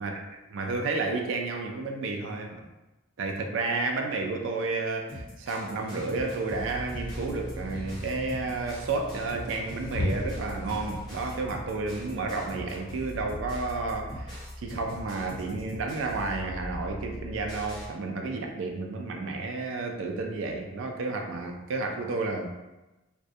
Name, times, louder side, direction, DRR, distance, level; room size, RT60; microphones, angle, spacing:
voice 1, 0.5-2.7 3.2-22.5, right 3 dB, 65° right, 3 dB, 0.3 m, -31 dB
sound 1, 5.1-17.9, equal, 20° left, 0.9 m, -40 dB
sound 2, 5.7-11.0, equal, 45° left, 0.6 m, -38 dB
2.2 x 2.1 x 2.6 m, 1.0 s
head